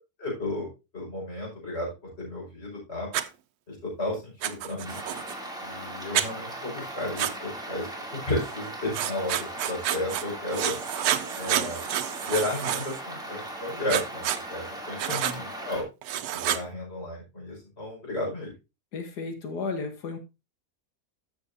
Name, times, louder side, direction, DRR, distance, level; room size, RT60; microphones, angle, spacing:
voice 1, 0.2-0.7 0.9-1.9 2.2-3.1 3.7-5.0 5.6-10.7 11.4-11.8 12.2-14.2 14.5-15.8 16.3-18.5, left 1 dB, 40° left, -3 dB, 5.6 m, -33 dB
Writing, 3.1-3.3 4.4-5.3 6.1-6.3 7.2-7.3 8.9-10.2 10.5-13.0 13.9-14.4 15.0-15.4 16.0-16.6, right 11 dB, 75° right, 1.1 m, -29 dB
sound 1, 4.8-15.8, right 1 dB, ahead, 2.6 m, -38 dB
voice 2, 15.1-15.4 18.9-20.2, left 4 dB, 90° left, 6 dB, 2.0 m, -34 dB
13.5 x 6.9 x 2.7 m, 0.26 s
omnidirectional pair, 1.7 m